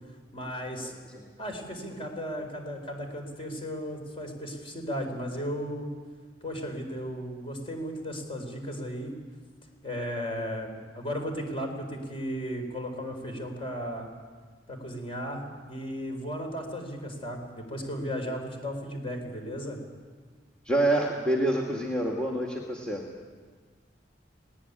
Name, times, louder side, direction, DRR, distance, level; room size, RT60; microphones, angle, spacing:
voice 1, 0.3-0.9 1.4-5.9 6.4-9.1 9.8-14.1 14.7-15.4 15.7-19.8, equal, 30° left, 3 dB, 4.6 m, -35 dB
voice 2, 20.6-23.0, right 1 dB, 5° left, -1 dB, 2.2 m, -27 dB
20.0 x 19.0 x 9.9 m, 1.5 s
head